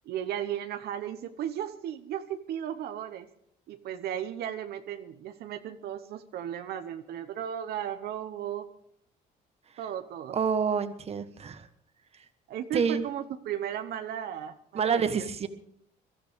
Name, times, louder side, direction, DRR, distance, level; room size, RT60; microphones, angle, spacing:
voice 1, 0.0-3.3 3.7-8.7 9.8-10.4 12.5-15.3, right 10 dB, 70° right, 8 dB, 1.0 m, -35 dB
voice 2, 10.3-11.7 12.7-13.0 14.7-15.5, right 6 dB, 40° right, 10 dB, 1.3 m, -27 dB
23.0 x 13.5 x 3.6 m, 0.67 s
cardioid pair, 110°, 17 cm